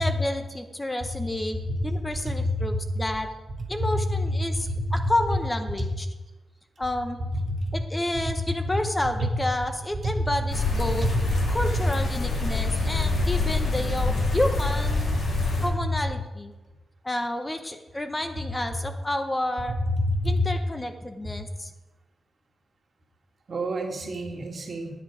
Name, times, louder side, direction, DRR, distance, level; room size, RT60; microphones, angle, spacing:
voice 1, 0.0-3.3 3.7-6.1 6.8-7.2 7.7-11.1 11.5-15.2 15.6-16.5 17.0-19.8 20.2-21.7, left 1 dB, 20° left, 7 dB, 0.7 m, -30 dB
voice 2, 2.3-2.7 3.8-4.2 4.7-4.8 7.6-7.7 11.0-11.1 15.3-15.6 20.0-20.5 23.5-24.9, equal, 55° right, 1 dB, 2.0 m, -27 dB
sound 1, 10.5-15.7, left 3 dB, 70° left, 2.2 m, -26 dB
9.3 x 9.2 x 4.9 m, 1.2 s
cardioid pair, 85°, 0 cm